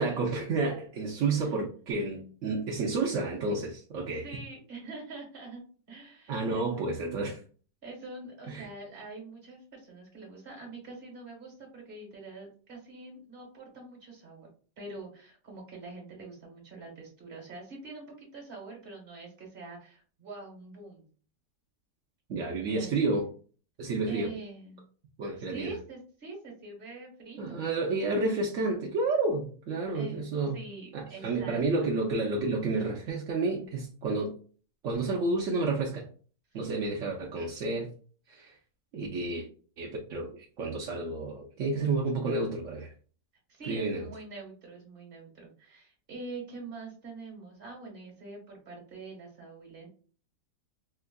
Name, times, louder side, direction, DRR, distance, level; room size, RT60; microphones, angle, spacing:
voice 1, 0.0-4.3 6.3-7.4 8.5-8.7 22.3-23.3 23.8-24.3 25.2-25.7 27.4-30.6 30.9-34.3 34.8-36.1 36.5-37.9 38.3-38.6 38.9-39.5 39.8-42.9 43.7-44.1, right 3 dB, 65° right, 0.7 m, -30 dB
voice 2, 4.2-5.6 5.9-6.8 7.8-14.5 14.8-21.1 22.7-23.0 24.1-24.8 25.5-27.7 29.9-30.2 30.5-31.9 43.5-49.9, right 3 dB, 35° right, 1.3 m, -44 dB
4.3 x 2.3 x 2.2 m
omnidirectional pair, 1.9 m